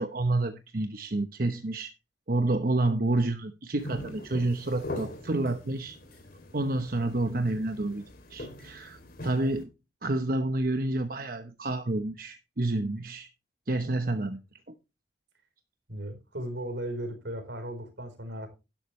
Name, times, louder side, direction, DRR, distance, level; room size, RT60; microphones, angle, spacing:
voice 1, 0.0-1.9 2.3-6.0 6.5-9.7 10.0-13.3 13.7-14.4, right 2 dB, 50° right, 0.9 m, -29 dB
sound 1, 3.8-9.6, left 1 dB, 55° left, 3.1 m, -42 dB
voice 2, 15.9-18.5, right 1 dB, 75° right, 4.1 m, -36 dB
12.0 x 11.5 x 3.2 m
head